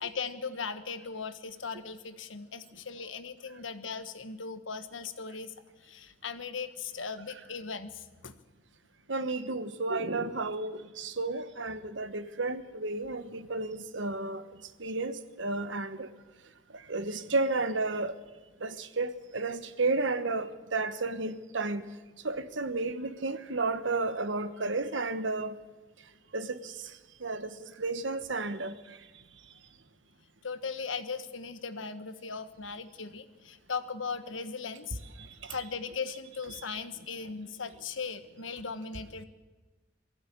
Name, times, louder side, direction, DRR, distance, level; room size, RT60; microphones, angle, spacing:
voice 1, 0.0-5.5 5.8-8.3 30.4-35.0 35.5-39.2, left 5 dB, 80° left, 11 dB, 1.3 m, -38 dB
voice 2, 9.1-14.4 14.8-16.1 16.9-18.1 18.6-21.8 22.2-25.5 26.3-26.6 27.2-27.5 27.8-28.7, right 3 dB, 70° right, 11 dB, 1.2 m, -32 dB
22.5 x 15.5 x 8.6 m, 1.2 s
head